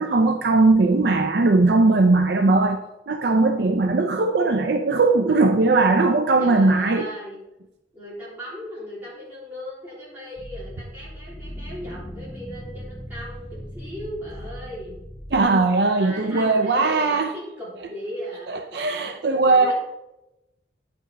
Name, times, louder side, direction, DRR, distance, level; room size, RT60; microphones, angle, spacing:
voice 1, 0.0-2.8 3.1-7.1 15.3-17.3 18.5-19.7, right 3 dB, 60° right, 6 dB, 0.5 m, -19 dB
voice 2, 6.4-7.4 7.9-15.0 15.9-19.7, equal, 10° right, -8 dB, 3.5 m, -37 dB
sound 1, 10.4-15.4, equal, 15° left, 0.7 m, -38 dB
9.6 x 6.1 x 4.0 m, 0.93 s
head